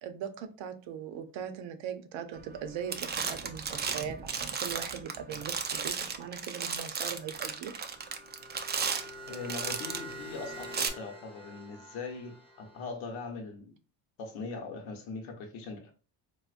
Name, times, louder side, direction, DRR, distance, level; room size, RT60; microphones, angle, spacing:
voice 1, 0.0-7.7, right 8 dB, 70° right, 0.7 m, -40 dB
sound 1, 2.4-2.6 2.9-10.1 10.6-10.9, right 5 dB, 25° right, 0.3 m, -35 dB
sound 2, 7.9-12.9, right 1 dB, 10° left, 0.8 m, -46 dB
voice 2, 9.3-13.8 14.2-15.9, left 4 dB, 80° left, 0.9 m, -41 dB
3.8 x 2.1 x 2.4 m
supercardioid pair, 80°, 48 cm